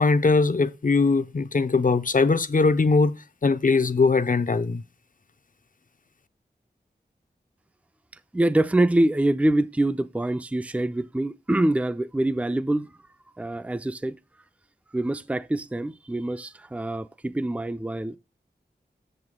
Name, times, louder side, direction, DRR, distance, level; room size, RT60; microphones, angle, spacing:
voice 1, 0.0-3.1 3.4-4.8, left 4 dB, 50° left, 0.6 m, -21 dB
voice 2, 8.3-12.9 13.4-14.2 14.9-18.2, right 1 dB, 10° right, 0.4 m, -25 dB
7.9 x 7.3 x 3.7 m
wide cardioid pair, 65°, 18 cm